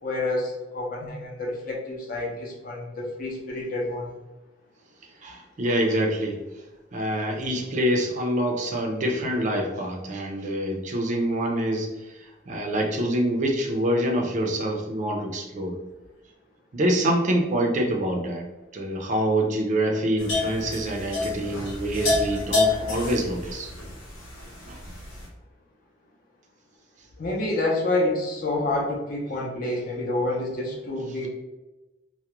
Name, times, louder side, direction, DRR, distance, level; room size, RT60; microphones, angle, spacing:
voice 1, 0.0-4.1 27.2-31.3, left 2 dB, 50° left, -2 dB, 0.6 m, -28 dB
voice 2, 5.2-6.4 6.9-12.1 12.5-15.8 16.7-18.5 18.7-23.7 24.7-24.8, right 1 dB, 40° right, 1 dB, 0.4 m, -26 dB
sound 1, 20.2-25.3, left 2 dB, 85° left, 0.8 m, -28 dB
2.3 x 2.1 x 2.8 m, 1.1 s
head